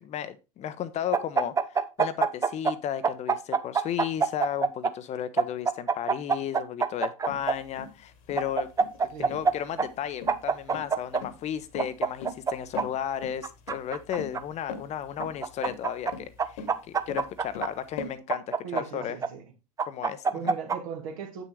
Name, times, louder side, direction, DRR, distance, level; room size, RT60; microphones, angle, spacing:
voice 1, 0.0-8.7 9.2-19.2 19.9-20.5, left 10 dB, 35° left, 0.7 m, -34 dB
sound 1, 1.1-2.7 3.0-4.9 5.4-7.5 8.4-9.5 9.8-9.9 10.3-11.2 11.8-12.8 13.4-14.4 15.2-16.1 16.4-17.7 18.3-19.3 19.8-20.8, right 5 dB, 15° right, 0.6 m, -25 dB
sound 2, 7.3-18.1, left 4 dB, 55° left, 1.5 m, -41 dB
voice 2, 18.6-19.4 20.3-21.4, right 7 dB, 60° right, 1.9 m, -38 dB
8.0 x 6.3 x 3.2 m
figure-of-eight pair, 75°, 19 cm